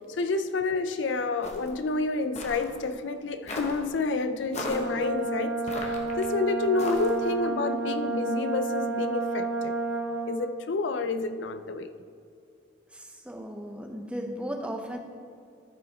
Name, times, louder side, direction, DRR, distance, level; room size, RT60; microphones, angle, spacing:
voice 1, 0.2-5.5 5.8-9.8 10.3-11.9, left 3 dB, 75° left, 0.5 m, -29 dB
sound 1, 1.4-1.8 2.4-2.7 3.5-3.8 4.5-4.9 5.7-6.2 6.8-7.3, left 1 dB, 35° left, 1.0 m, -36 dB
Brass instrument, 4.6-10.4, right 3 dB, 55° left, 1.3 m, -30 dB
voice 2, 12.9-15.0, equal, 5° right, 0.7 m, -36 dB
13.5 x 4.7 x 4.2 m
head